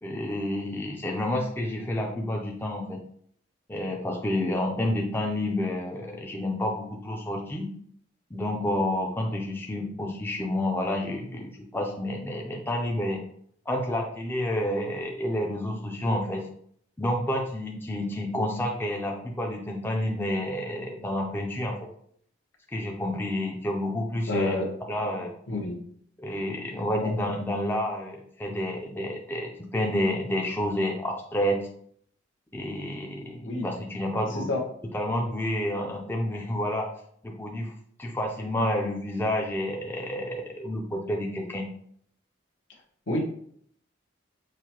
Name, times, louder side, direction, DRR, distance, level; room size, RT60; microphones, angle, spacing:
voice 1, 0.0-3.0 3.7-7.7 8.3-13.2 13.7-16.4 17.0-21.8 22.7-24.6 24.9-25.3 26.2-31.6 32.5-34.5 34.9-36.9 37.2-37.7 38.0-41.7, left 1 dB, 10° left, 1 dB, 0.4 m, -29 dB
voice 2, 24.3-24.7 25.5-25.8 27.0-27.1 33.4-33.7 34.3-34.6 43.1-43.2, left 2 dB, 75° left, 0 dB, 0.9 m, -28 dB
6.3 x 2.1 x 2.9 m, 0.64 s
head